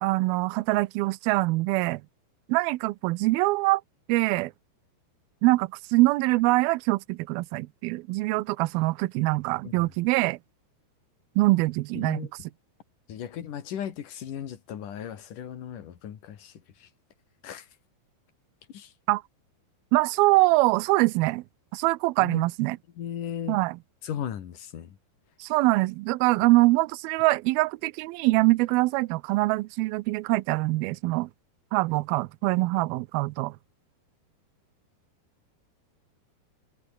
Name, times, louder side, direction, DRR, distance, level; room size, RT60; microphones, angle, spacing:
voice 1, 0.0-2.0 2.5-3.8 4.1-4.5 5.4-10.4 11.4-12.3 19.1-19.2 19.9-21.4 21.7-22.8 23.5-23.8 25.4-31.3 31.7-33.6, right 21 dB, 90° right, 2.2 m, -24 dB
voice 2, 11.9-12.3 13.1-16.5 17.4-17.6 18.7-18.9 22.2-22.4 23.0-23.6 24.0-24.9, left 9 dB, 55° left, 3.2 m, -36 dB
omnidirectional pair, 5.0 m